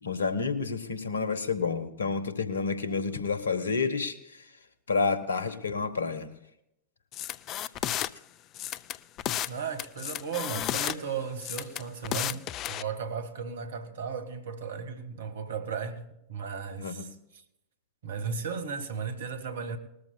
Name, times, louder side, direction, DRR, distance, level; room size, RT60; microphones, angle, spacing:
voice 1, 0.0-4.5 4.9-6.3 16.8-17.0, left 4 dB, 80° left, 1.3 m, -29 dB
sound 1, 7.1-8.1 8.5-9.5 9.8-11.0 11.4-12.8, left 12 dB, 40° left, 0.5 m, -32 dB
voice 2, 9.5-16.0 16.3-17.4 18.0-19.8, right 6 dB, 70° right, 1.7 m, -35 dB
20.0 x 14.0 x 2.3 m
figure-of-eight pair, 90°, 0 cm